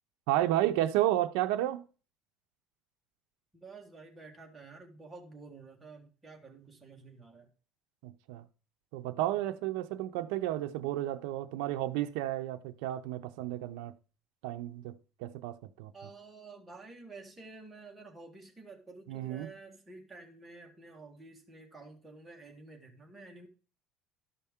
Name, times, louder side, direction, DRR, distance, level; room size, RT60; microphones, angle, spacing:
voice 1, 0.3-1.8 8.0-8.4 8.9-13.9 14.4-14.9 15.2-15.9 19.1-19.5, right 14 dB, 85° right, 0.5 m, -32 dB
voice 2, 3.5-7.5 15.9-23.5, right 3 dB, 10° right, 1.6 m, -50 dB
12.5 x 5.5 x 3.6 m
cardioid pair, 145°, 0 cm